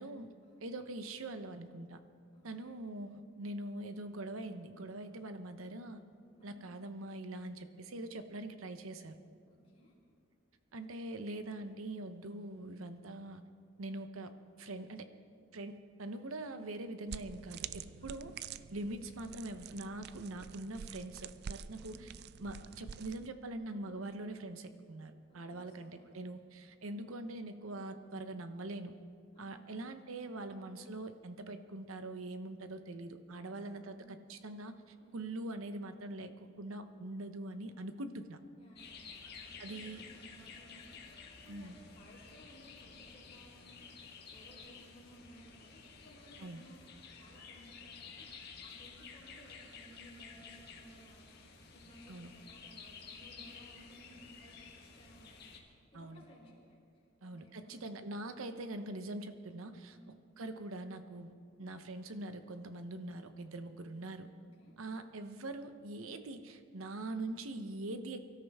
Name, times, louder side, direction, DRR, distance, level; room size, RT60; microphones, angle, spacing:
voice 1, 0.0-0.3 0.6-2.0 2.4-6.0 6.4-9.1 10.7-13.4 13.8-14.3 14.6-15.1 15.5-18.3 18.7-22.1 22.4-29.0 29.4-38.4 39.6-40.0 41.5-41.7 46.4-46.6 52.1-52.3 55.9-56.2 57.2-60.0 60.4-61.3 61.6-64.3 64.8-68.2, right 2 dB, 85° right, 9 dB, 0.9 m, -43 dB
voice 2, 2.3-2.7 6.4-6.5 9.5-9.9 18.0-18.4 21.7-22.1 25.3-26.2 26.8-27.2 29.3-29.8 33.4-34.1 35.0-35.2 38.6-56.8 57.2-57.8 59.9-60.1 64.6-64.7, equal, 30° left, -5 dB, 4.5 m, -59 dB
sound 1, 17.1-23.3, right 8 dB, 50° right, 0.3 m, -47 dB
sound 2, 38.8-55.6, left 5 dB, 50° left, 1.6 m, -52 dB
24.0 x 13.0 x 3.6 m, 2.3 s
head